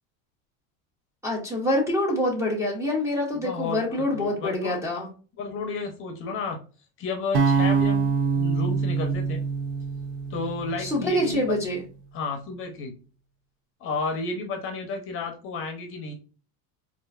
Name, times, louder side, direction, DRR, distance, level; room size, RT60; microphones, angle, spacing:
voice 1, 1.2-5.1 10.8-11.8, left 1 dB, 5° right, -1 dB, 0.6 m, -26 dB
voice 2, 3.4-4.8 5.4-6.6 7.0-9.4 10.3-11.6 12.1-12.9 13.8-16.1, left 3 dB, 30° left, 3 dB, 0.7 m, -32 dB
sound 1, 7.3-11.5, right 5 dB, 60° right, 0.7 m, -25 dB
4.3 x 2.5 x 2.4 m, 0.36 s
supercardioid pair, 150°, 41 cm